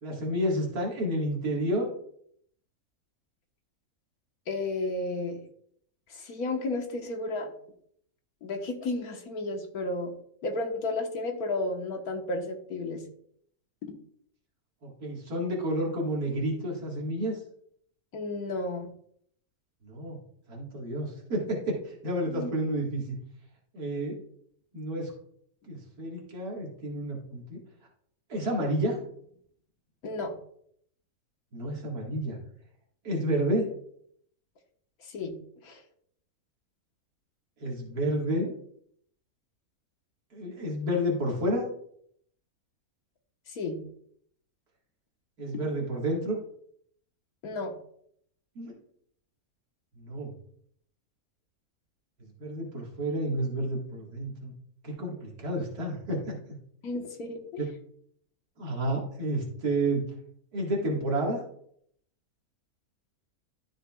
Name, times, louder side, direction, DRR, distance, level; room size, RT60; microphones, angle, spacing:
voice 1, 0.0-1.9 14.8-17.4 19.8-20.2 20.5-23.2 23.7-24.2 24.7-25.1 25.7-27.6 28.3-29.0 31.5-32.4 33.0-33.7 37.6-38.5 40.3-41.7 45.4-46.4 48.6-48.7 50.0-50.3 52.4-54.5 54.8-56.3 57.6-57.7 58.6-60.0 60.5-61.4, right 1 dB, 85° right, -2 dB, 2.4 m, -30 dB
voice 2, 4.5-5.4 6.1-7.5 8.4-10.1 10.4-13.0 13.8-13.9 18.1-18.9 22.3-22.5 30.0-30.3 35.0-35.3 35.6-35.8 43.5-43.8 45.5-45.6 47.4-47.8 56.8-57.4, left 2 dB, 75° left, 2 dB, 1.8 m, -32 dB
12.5 x 6.5 x 2.4 m, 0.65 s
omnidirectional pair, 1.6 m